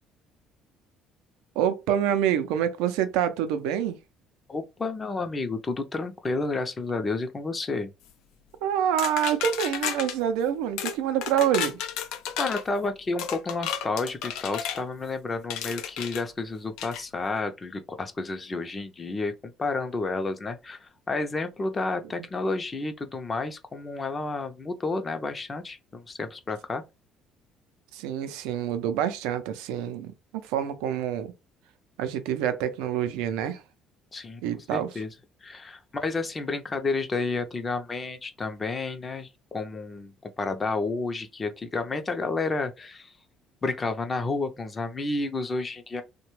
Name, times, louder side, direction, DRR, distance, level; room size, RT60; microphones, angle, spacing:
voice 1, 1.6-4.0 8.6-11.8 27.9-31.3 32.0-33.6 34.4-34.9, right 9 dB, 90° right, 0.4 m, -27 dB
voice 2, 4.5-7.9 12.4-26.8 34.1-34.4 34.7-35.1 35.4-43.1 43.6-46.0, left 3 dB, 30° left, 0.5 m, -31 dB
sound 1, 9.0-10.2 10.8-11.0 11.2-12.6 13.2-14.8 15.5-16.2 16.8-17.0, left 9 dB, 80° left, 0.4 m, -32 dB
2.8 x 2.2 x 3.1 m
cardioid pair, 95°, 0 cm